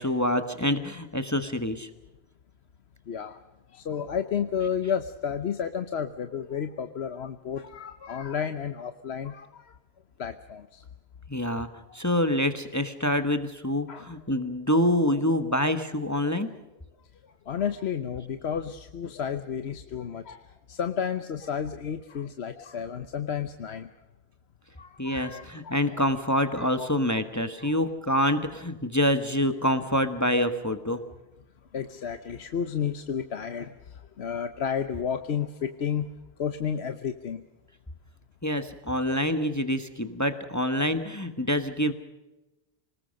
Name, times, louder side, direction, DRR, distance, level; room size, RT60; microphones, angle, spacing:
voice 1, 0.0-1.9 11.3-11.7 11.9-16.5 25.0-31.0 38.4-41.9, left 1 dB, 15° left, 9 dB, 1.2 m, -26 dB
voice 2, 3.1-3.4 3.7-9.8 10.2-10.8 13.9-14.0 17.5-23.9 24.8-25.8 26.8-26.9 27.4-27.8 31.7-36.1 36.4-37.4, left 7 dB, 75° left, 9 dB, 1.2 m, -32 dB
26.5 x 19.5 x 6.4 m, 1.1 s
omnidirectional pair, 1.1 m